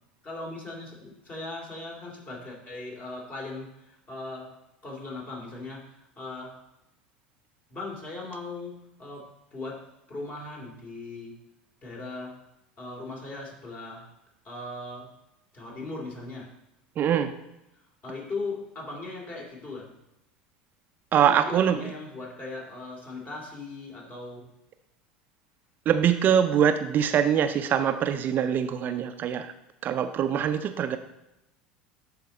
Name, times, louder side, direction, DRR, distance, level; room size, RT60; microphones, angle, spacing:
voice 1, 0.2-4.6 4.8-6.6 7.7-11.4 11.8-12.4 12.8-14.1 14.4-15.1 15.5-16.5 17.8-19.9 21.1-24.5, left 2 dB, 35° left, -1 dB, 2.7 m, -39 dB
voice 2, 17.0-17.3 21.1-21.8 25.9-29.5 29.8-31.0, right 8 dB, 40° right, 9 dB, 0.5 m, -23 dB
11.5 x 4.4 x 4.0 m, 0.87 s
hypercardioid pair, 75°, 5 cm